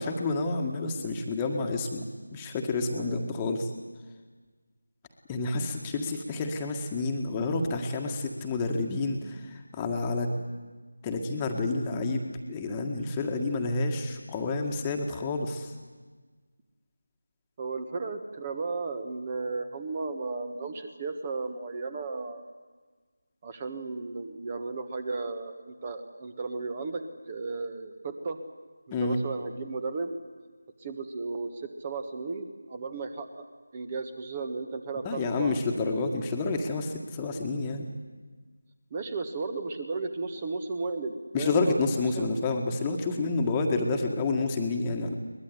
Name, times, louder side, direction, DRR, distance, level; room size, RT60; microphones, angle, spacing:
voice 1, 0.0-2.1 2.3-3.7 5.3-9.4 9.7-10.3 11.0-12.2 12.5-15.7 28.9-29.2 35.0-37.9 41.3-45.2, left 3 dB, 15° left, 3 dB, 1.8 m, -29 dB
voice 2, 17.6-22.4 23.4-28.4 29.0-30.1 30.8-33.4 33.7-35.6 38.9-42.3, right 3 dB, 25° right, 8 dB, 1.6 m, -35 dB
23.0 x 20.5 x 9.9 m, 1.4 s
figure-of-eight pair, 165°, 0 cm